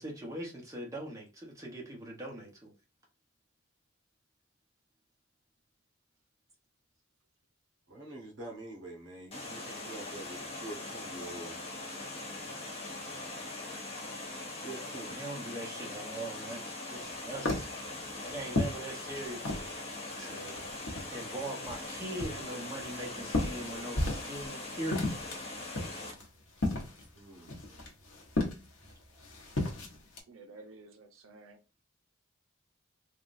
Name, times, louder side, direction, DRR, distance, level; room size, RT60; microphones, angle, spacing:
voice 1, 0.0-2.7 15.1-16.6 16.9-20.6 21.1-25.4, right 1 dB, 15° right, 0.9 m, -41 dB
voice 2, 7.9-11.6 14.6-15.2 27.1-27.9, right 2 dB, 60° right, 1.0 m, -46 dB
Water, 9.3-26.1, left 2 dB, 25° left, 0.9 m, -41 dB
sound 1, 17.1-19.8 20.1-21.2 21.7-24.5 24.8-30.2, left 2 dB, 70° left, 0.9 m, -35 dB
voice 3, 30.3-31.6, right 3 dB, 75° right, 0.7 m, -52 dB
3.5 x 2.3 x 2.5 m
head